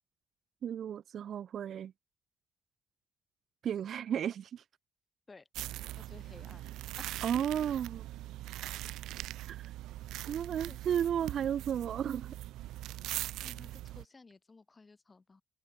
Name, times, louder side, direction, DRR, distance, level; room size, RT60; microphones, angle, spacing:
voice 1, 0.6-1.9 3.6-4.6 7.2-8.0 9.5-9.7 10.3-12.4, right 9 dB, 65° right, 0.7 m, -33 dB
sound 1, 5.5-14.1, right 15 dB, 90° right, 1.5 m, -41 dB
voice 2, 6.0-6.7 7.0-7.1 7.3-7.4 10.6-10.8 13.4-15.4, left 3 dB, 25° left, 6.5 m, -55 dB
open air
cardioid pair, 90°, 0 cm